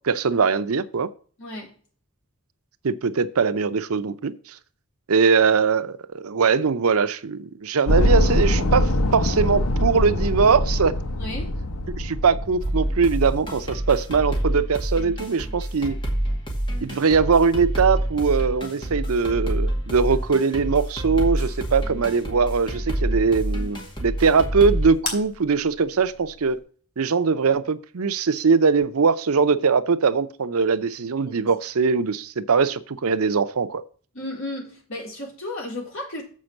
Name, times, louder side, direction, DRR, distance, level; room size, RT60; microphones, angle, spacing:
voice 1, 0.0-1.1 2.8-4.6 5.1-10.9 12.0-16.0 16.8-26.6 27.0-33.8, right 5 dB, 85° right, 0.6 m, -21 dB
voice 2, 1.4-1.7 11.2-11.5 31.3-31.6 34.1-36.2, left 1 dB, 65° left, 3.8 m, -34 dB
sound 1, 7.9-14.2, left 1 dB, 90° left, 0.9 m, -23 dB
sound 2, 12.6-24.9, right 1 dB, 20° left, 2.2 m, -27 dB
sound 3, 21.3-26.6, left 2 dB, 45° left, 3.2 m, -40 dB
7.5 x 5.2 x 6.5 m
head